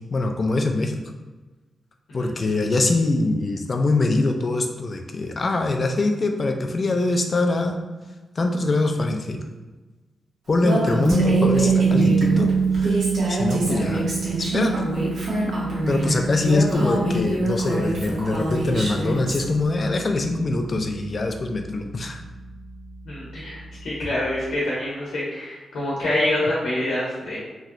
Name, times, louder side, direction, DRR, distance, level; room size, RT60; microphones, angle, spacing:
voice 1, 0.1-1.0 2.1-7.8 8.4-9.4 10.5-12.5 12.8-14.1 14.4-14.9 15.9-22.2, left 2 dB, 40° left, 4 dB, 0.3 m, -23 dB
Female speech woman speaking, 10.6-19.4, right 1 dB, 70° right, 1.0 m, -26 dB
sound 1, 11.1-22.9, right 5 dB, 10° left, 0.8 m, -25 dB
voice 2, 23.1-27.4, left 1 dB, 85° left, -6 dB, 0.8 m, -26 dB
3.0 x 2.6 x 2.5 m, 1.2 s
wide cardioid pair, 110°, 0 cm